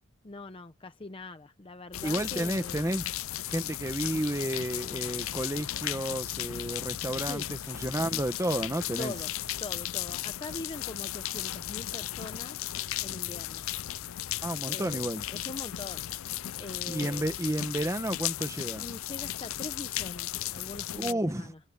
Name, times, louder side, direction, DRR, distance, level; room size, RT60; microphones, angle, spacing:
voice 1, 0.2-2.9 7.3-7.5 9.0-9.3 9.6-12.6 13.0-13.7 14.7-15.0 15.3-16.1 16.6-17.2 18.8-21.6, left 2 dB, 25° left, 0.7 m, -42 dB
sound 1, 1.9-21.1, left 13 dB, 70° left, 0.5 m, -35 dB
voice 2, 2.0-3.1 3.5-9.1 14.4-15.2 16.9-18.8 20.9-21.5, right 1 dB, 15° right, 1.3 m, -31 dB
head